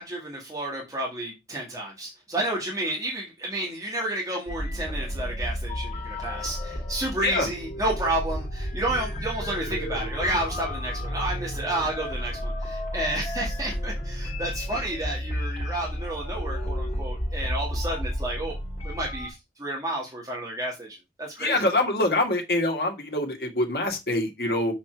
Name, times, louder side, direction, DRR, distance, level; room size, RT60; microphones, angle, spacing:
voice 1, 0.0-18.6 18.8-21.5, right 1 dB, 20° right, 1.9 m, -31 dB
sound 1, 4.5-19.3, equal, 40° left, 2.9 m, -32 dB
voice 2, 21.4-24.7, left 2 dB, 55° left, 2.0 m, -25 dB
7.3 x 4.3 x 4.5 m
head